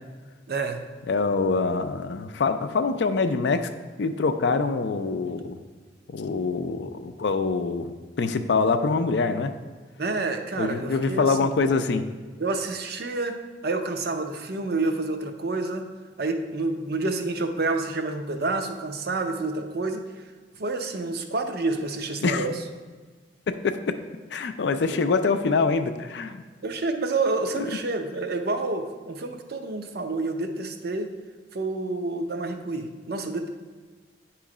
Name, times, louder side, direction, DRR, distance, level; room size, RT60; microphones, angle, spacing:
voice 1, 0.5-0.8 10.0-11.5 12.4-15.9 16.2-20.0 20.6-22.6 26.6-31.1 31.5-33.5, right 3 dB, 55° right, 5 dB, 0.6 m, -28 dB
voice 2, 1.1-3.7 4.0-5.6 6.1-9.5 10.6-12.0 22.2-22.5 23.5-23.9 24.3-26.4 27.6-27.7, left 4 dB, 65° left, 9 dB, 0.4 m, -25 dB
9.2 x 3.1 x 4.8 m, 1.4 s
head